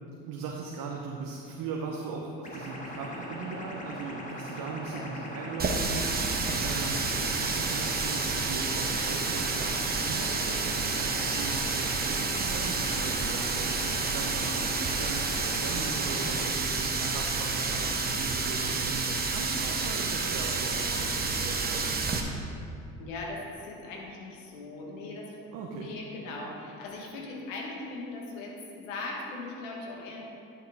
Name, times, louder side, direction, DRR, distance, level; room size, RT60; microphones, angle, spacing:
voice 1, 0.3-7.1 7.4-22.2 25.5-25.9, right 4 dB, 60° right, -1 dB, 1.0 m, -39 dB
sound 1, 2.4-16.4, equal, 20° left, 1.6 m, -40 dB
Water tap faucet, 5.6-22.2, right 4 dB, 25° right, 1.0 m, -29 dB
voice 2, 7.0-7.4 23.0-30.2, left 2 dB, 90° left, -1 dB, 1.4 m, -40 dB
10.5 x 5.8 x 3.6 m, 2.5 s
hypercardioid pair, 70°, 37 cm